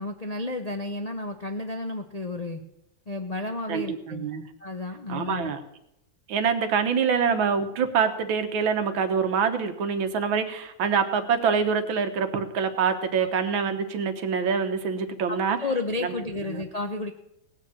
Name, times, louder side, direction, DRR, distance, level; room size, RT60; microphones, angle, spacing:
voice 1, 0.0-2.6 3.1-4.3 4.6-5.5 13.2-13.3 15.3-17.1, left 2 dB, 55° left, 4 dB, 0.4 m, -32 dB
voice 2, 3.7-4.5 5.1-5.6 6.3-15.6 16.0-16.1 16.5-16.6, right 6 dB, 90° right, 9 dB, 2.0 m, -25 dB
18.0 x 6.5 x 8.7 m, 0.81 s
omnidirectional pair, 2.1 m